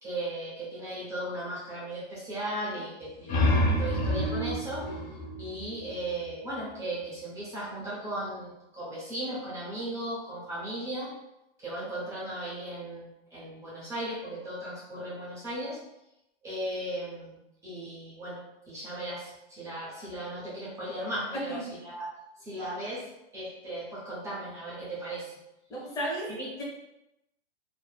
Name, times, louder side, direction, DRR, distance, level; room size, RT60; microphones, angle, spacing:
voice 1, 0.0-4.9 5.4-11.1 11.6-15.8 16.4-18.4 18.7-22.1 22.4-23.1 23.3-25.3 26.3-26.5, right 1 dB, 10° right, -7 dB, 0.4 m, -36 dB
sound 1, 3.0-6.4, left 1 dB, 45° left, 0.8 m, -28 dB
voice 2, 25.7-26.6, right 1 dB, 10° left, -6 dB, 0.8 m, -34 dB
3.1 x 2.0 x 2.2 m, 0.88 s
hypercardioid pair, 125°, 33 cm